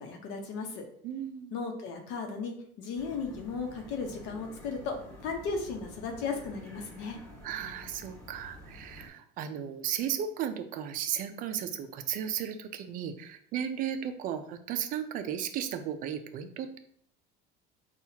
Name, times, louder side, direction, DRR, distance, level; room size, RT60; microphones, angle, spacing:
voice 1, 0.0-0.8 1.5-4.9 5.2-7.2, left 4 dB, 75° left, 3 dB, 0.9 m, -36 dB
voice 2, 1.0-1.6 7.4-16.8, right 9 dB, 50° right, 9 dB, 0.4 m, -35 dB
sound 1, 3.0-9.1, equal, 15° left, 1.3 m, -49 dB
5.7 x 2.4 x 2.8 m, 0.64 s
cardioid pair, 155°, 19 cm